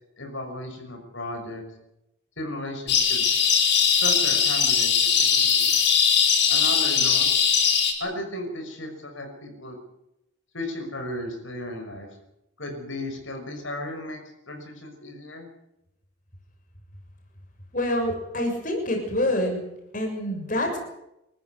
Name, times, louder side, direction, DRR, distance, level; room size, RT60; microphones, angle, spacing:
voice 1, 0.2-1.6 2.4-3.2 4.0-5.7 6.5-7.3 8.0-9.8 10.5-12.1 12.6-14.2 14.5-15.5, left 1 dB, 70° left, 4 dB, 6.0 m, -35 dB
sound 1, 2.9-7.9, left 7 dB, 55° left, 4.7 m, -20 dB
voice 2, 17.7-19.7 19.9-20.8, left 1 dB, 40° left, 3 dB, 6.8 m, -26 dB
27.0 x 14.5 x 9.6 m, 0.85 s
head